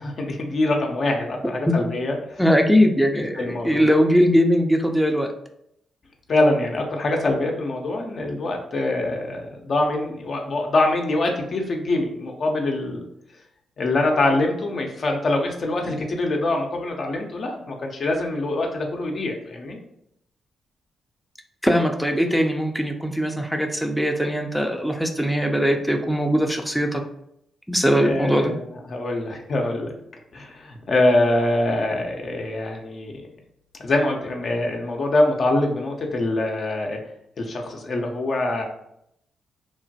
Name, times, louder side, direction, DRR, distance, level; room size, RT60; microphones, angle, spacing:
voice 1, 0.0-2.4 3.2-3.9 6.3-13.1 13.8-19.8 28.0-28.6 28.9-29.9 30.3-33.1 33.8-37.0 37.4-38.7, left 2 dB, 55° left, 1 dB, 0.5 m, -24 dB
voice 2, 2.4-5.3 21.6-27.0 27.7-28.5, equal, ahead, 3 dB, 0.5 m, -20 dB
3.1 x 2.1 x 2.7 m, 0.76 s
hypercardioid pair, 45°, 0 cm